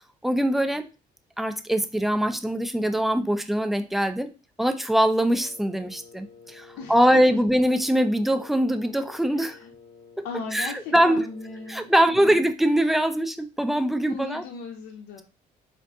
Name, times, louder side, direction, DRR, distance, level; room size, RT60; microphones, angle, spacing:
voice 1, 0.2-0.9 1.4-4.3 4.6-9.6 10.2-10.3 10.5-11.3 11.7-14.4, equal, ahead, 8 dB, 0.4 m, -22 dB
Wind instrument woodwind instrument, 5.2-12.0, left 5 dB, 55° left, 1.2 m, -50 dB
voice 2, 6.8-7.4 9.3-9.7 10.2-12.4 14.0-15.2, left 5 dB, 85° left, 1 dB, 0.6 m, -38 dB
3.7 x 2.5 x 3.5 m, 0.31 s
cardioid pair, 110°, 17 cm